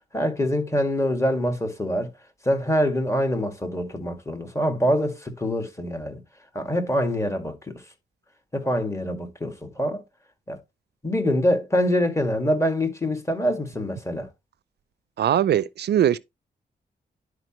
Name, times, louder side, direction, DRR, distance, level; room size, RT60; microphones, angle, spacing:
voice 1, 0.1-2.1 2.4-6.2 6.5-7.8 8.5-10.0 10.5-10.6 11.0-14.3, equal, 15° left, 1.9 m, -25 dB
voice 2, 15.2-16.2, right 10 dB, 70° right, 0.4 m, -21 dB
10.5 x 4.9 x 3.0 m
cardioid pair, 95°, 18 cm